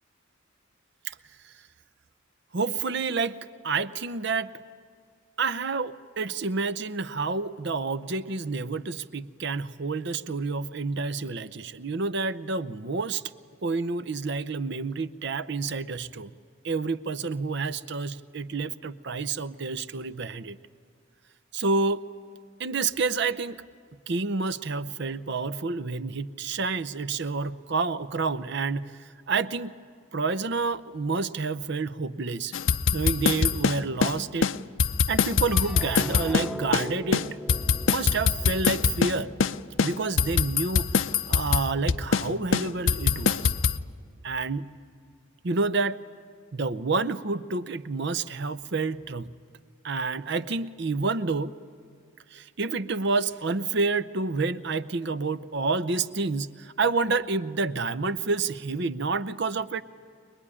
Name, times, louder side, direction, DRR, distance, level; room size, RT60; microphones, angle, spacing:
voice 1, 2.5-3.4 3.6-4.5 5.4-13.2 13.6-16.3 16.6-20.6 21.5-22.0 22.6-23.6 24.1-29.0 29.3-29.7 30.1-32.5 32.9-34.5 35.1-37.3 37.9-39.3 39.8-43.5 44.2-44.7 45.4-46.0 46.5-49.3 49.8-51.6 52.3-59.8, right 4 dB, 50° right, 14 dB, 0.6 m, -29 dB
sound 1, 32.5-34.1 34.4-34.5 34.8-36.9 37.1-39.1 39.4-39.5 39.8-42.3 42.5-43.8, left 6 dB, 65° left, 0.6 m, -23 dB
sound 2, 35.5-42.0 42.4-43.1, equal, 5° right, 0.6 m, -41 dB
23.5 x 21.0 x 9.8 m, 2.2 s
head